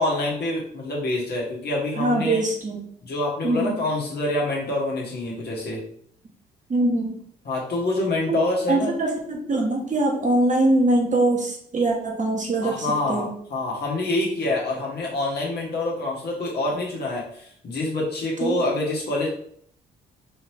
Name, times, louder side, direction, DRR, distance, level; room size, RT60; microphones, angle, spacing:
voice 1, 0.0-2.4 3.0-5.8 7.4-8.9 12.6-19.3, left 2 dB, 55° left, -3 dB, 1.6 m, -26 dB
voice 2, 2.0-2.8 3.4-3.8 6.7-7.2 8.3-8.4 8.7-13.3 18.4-18.6, right 2 dB, 40° right, 0 dB, 1.2 m, -23 dB
3.9 x 3.0 x 3.5 m, 0.64 s
supercardioid pair, 55°, 20 cm